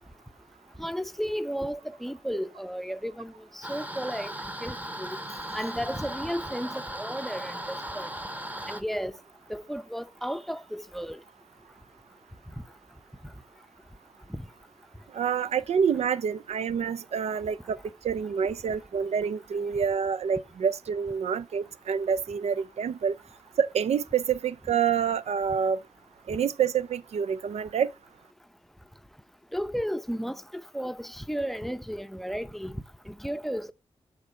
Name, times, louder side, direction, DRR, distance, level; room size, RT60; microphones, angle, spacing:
voice 1, 0.8-4.3 4.6-5.2 5.5-8.1 8.7-9.1 9.5-11.2 14.3-14.4 29.5-32.8 33.1-33.7, equal, ahead, 0.6 m, -33 dB
sound 1, 3.6-8.8, equal, 15° right, 0.9 m, -37 dB
voice 2, 15.1-17.8 18.0-23.1 23.6-25.8 26.3-27.9, right 7 dB, 70° right, 0.4 m, -27 dB
7.3 x 3.9 x 5.0 m
cardioid pair, 50°, 11 cm